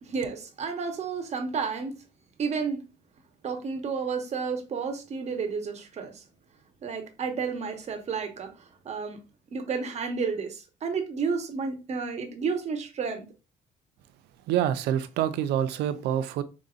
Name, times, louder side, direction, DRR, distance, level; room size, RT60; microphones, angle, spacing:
voice 1, 0.0-2.0 2.4-2.8 3.4-6.2 6.8-9.2 9.5-13.3, right 5 dB, 40° right, 0.9 m, -31 dB
voice 2, 14.5-16.4, right 10 dB, 80° right, 0.5 m, -26 dB
5.0 x 2.7 x 2.4 m
cardioid pair, 110°, 17 cm